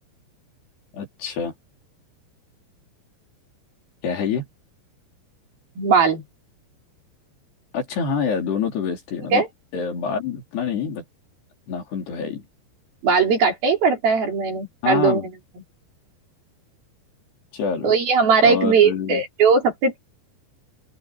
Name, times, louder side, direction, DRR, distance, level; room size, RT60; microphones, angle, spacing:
voice 1, 0.9-1.5 4.0-4.5 7.7-9.4 9.7-11.0 11.7-12.4 14.8-15.3 17.5-17.9 18.4-19.2, left 6 dB, 65° left, 6.0 m, -26 dB
voice 2, 5.8-6.2 9.3-9.5 13.0-15.3 17.8-20.0, right 5 dB, 55° right, 5.6 m, -19 dB
open air
omnidirectional pair, 5.2 m